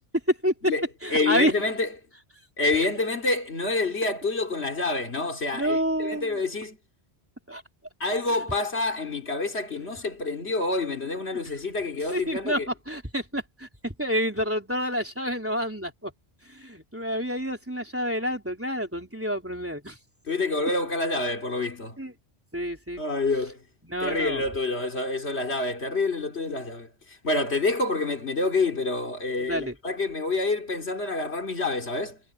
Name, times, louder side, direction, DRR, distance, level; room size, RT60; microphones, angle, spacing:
voice 1, 0.3-0.7 1.0-1.5 5.5-6.4 7.5-7.6 12.1-16.1 16.5-20.0 22.0-22.1 22.5-23.0 23.8-24.4 29.4-29.8, equal, 10° right, 3.7 m, -28 dB
voice 2, 1.1-1.9 2.6-6.8 8.0-12.7 20.3-22.0 23.0-23.6 24.0-32.2, left 3 dB, 90° left, 3.2 m, -27 dB
omnidirectional pair, 1.1 m